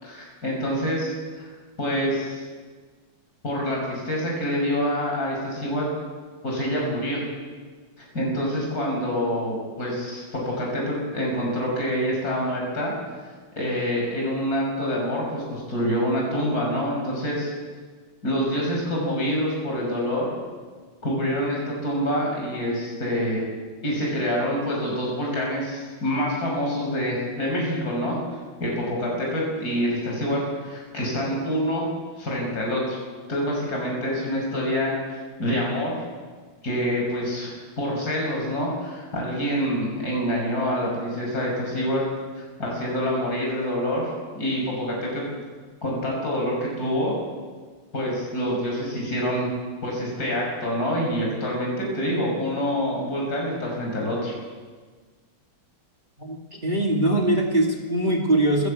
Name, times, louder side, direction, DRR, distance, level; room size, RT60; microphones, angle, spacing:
voice 1, 0.0-1.5 1.8-2.4 3.4-5.9 6.4-7.2 8.1-12.9 13.6-17.5 18.2-20.3 21.0-23.4 23.8-28.2 28.6-31.9 32.2-33.0 33.3-34.9 35.4-35.9 36.6-42.0 42.6-44.1 44.3-45.3 45.8-47.1 47.9-49.5 49.8-54.3, equal, 45° left, -2 dB, 6.4 m, -26 dB
voice 2, 56.2-58.7, right 1 dB, 25° right, 0 dB, 2.3 m, -22 dB
26.5 x 15.5 x 8.3 m, 1.5 s
omnidirectional pair, 2.2 m